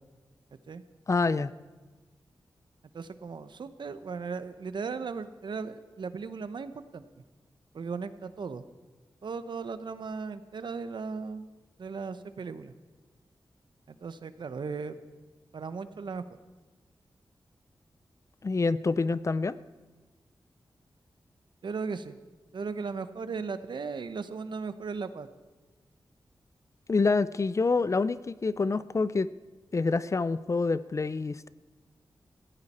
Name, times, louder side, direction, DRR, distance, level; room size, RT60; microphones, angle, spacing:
voice 1, 1.1-1.5 18.4-19.6 26.9-29.3 29.7-31.5, left 4 dB, 40° left, 16 dB, 0.5 m, -27 dB
voice 2, 2.9-7.0 7.7-8.6 9.2-11.5 11.8-12.7 13.9-14.9 15.5-16.2 21.6-22.2 22.5-25.3, right 5 dB, 70° right, 12 dB, 0.9 m, -37 dB
18.0 x 15.0 x 4.3 m, 1.3 s
wide cardioid pair, 90°, 8 cm